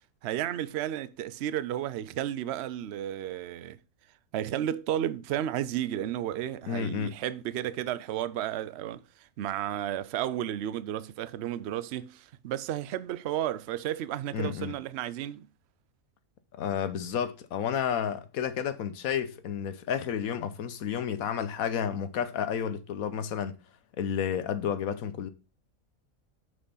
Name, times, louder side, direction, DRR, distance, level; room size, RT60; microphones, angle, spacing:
voice 1, 0.2-3.8 4.3-15.5, right 11 dB, 65° right, 0.7 m, -33 dB
voice 2, 6.7-7.2 14.3-14.7 16.6-23.6 24.0-25.3, left 8 dB, 75° left, 1.2 m, -31 dB
6.3 x 6.3 x 5.5 m
omnidirectional pair, 1.5 m